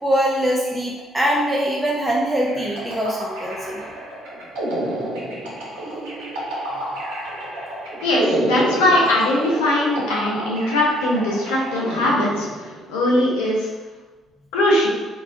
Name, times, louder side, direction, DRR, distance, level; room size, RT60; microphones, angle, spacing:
voice 1, 0.0-3.8, equal, 15° right, -4 dB, 0.5 m, -22 dB
sound 1, 2.5-12.9, right 1 dB, 85° right, 0.8 m, -29 dB
voice 2, 8.0-13.7 14.5-14.9, left 1 dB, 90° left, -3 dB, 0.7 m, -20 dB
3.9 x 2.2 x 2.5 m, 1.3 s
hypercardioid pair, 60°, 0 cm